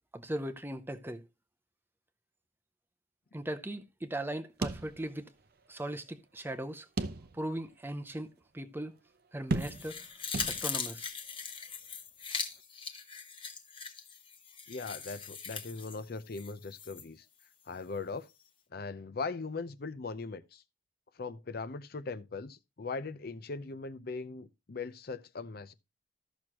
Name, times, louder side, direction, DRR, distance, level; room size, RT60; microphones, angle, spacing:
voice 1, 0.1-1.2 3.3-5.3 5.7-6.9 7.3-9.0 9.3-10.0 10.4-11.1, right 1 dB, 10° right, 0.6 m, -38 dB
sound 1, 4.6-5.5 5.8-5.9 7.0-7.6 8.1-8.2 9.5-10.1 10.3-11.0, right 2 dB, 55° right, 0.7 m, -35 dB
sound 2, 9.6-17.0 17.4-17.5, left 6 dB, 30° left, 1.0 m, -40 dB
voice 2, 14.7-17.3 17.7-18.3 18.7-20.6 21.2-25.7, left 4 dB, 55° left, 0.6 m, -40 dB
14.0 x 6.2 x 2.9 m
head